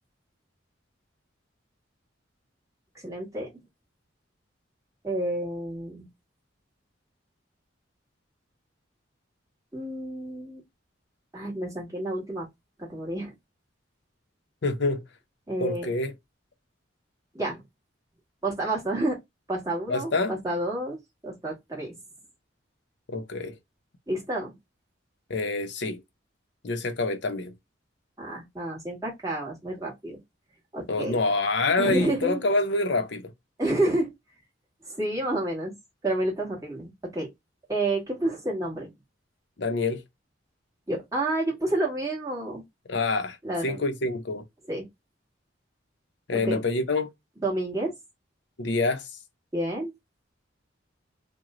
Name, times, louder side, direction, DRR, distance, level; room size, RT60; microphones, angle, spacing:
voice 1, 3.0-3.5 5.0-6.1 9.7-10.6 11.3-12.5 12.9-13.3 15.5-15.9 17.3-17.6 18.4-19.2 19.5-21.0 21.2-21.9 24.1-24.5 28.2-30.2 30.7-31.2 31.8-32.4 33.6-34.1 34.9-35.7 36.0-37.3 37.7-38.9 40.9-42.6 43.4-43.8 44.7-44.8 46.3-46.6 47.4-47.9 49.5-49.9, right 1 dB, 15° right, 1.5 m, -29 dB
voice 2, 14.6-15.0 15.6-16.1 19.9-20.3 23.1-23.5 25.3-26.0 26.6-27.5 30.9-33.3 39.6-40.0 42.9-43.4 43.6-44.4 46.3-47.1 48.6-49.1, left 2 dB, 60° left, 0.7 m, -26 dB
3.0 x 2.2 x 3.5 m
head